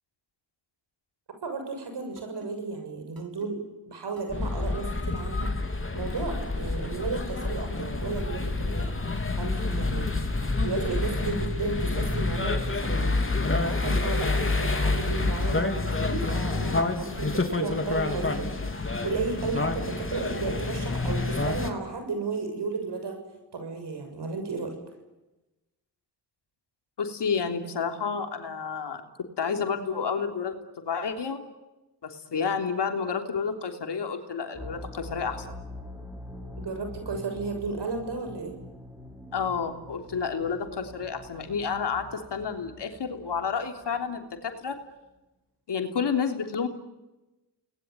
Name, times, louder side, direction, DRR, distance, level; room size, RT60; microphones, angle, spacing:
voice 1, 1.4-3.6 3.9-13.1 13.4-23.2 23.5-24.8 36.6-38.6, right 4 dB, 70° right, 6 dB, 6.9 m, -34 dB
sound 1, 2.2-2.5 3.2-3.5 4.2-4.5 5.2-5.5 6.2-6.5 7.2-7.5 8.2-8.5 9.2-9.5 10.2-10.5 11.2-11.5 12.2-12.5 13.2-13.5 14.2-14.5 15.2-15.5, right 3 dB, 55° right, 4.3 m, -48 dB
sound 2, 4.3-21.7, left 3 dB, 30° left, 3.5 m, -28 dB
voice 2, 27.0-29.0 29.4-31.4 32.0-35.5 39.3-44.8 45.7-46.7, left 6 dB, 75° left, 5 dB, 3.4 m, -30 dB
sound 3, 34.5-44.4, left 1 dB, 5° right, 6.4 m, -44 dB
29.5 x 20.5 x 9.5 m, 1.0 s
supercardioid pair, 45°, 42 cm